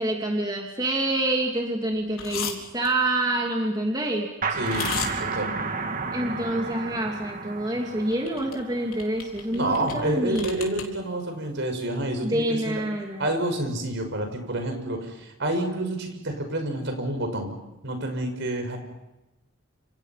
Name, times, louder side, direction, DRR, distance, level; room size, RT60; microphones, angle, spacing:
voice 1, 0.0-4.3 6.1-10.5 12.2-13.3, right 1 dB, 20° right, 0 dB, 2.7 m, -27 dB
sound 1, 2.1-2.5 2.8-2.9 4.6-5.1 8.1-8.6 8.9-10.0 10.3-10.8, left 7 dB, 85° left, 4.0 m, -32 dB
sound 2, 4.4-9.8, right 4 dB, 40° right, 1.8 m, -32 dB
voice 2, 4.6-5.6 9.5-12.8 13.2-17.5 17.8-18.8, right 1 dB, 60° right, 5 dB, 6.0 m, -29 dB
29.0 x 28.0 x 5.9 m, 0.97 s
head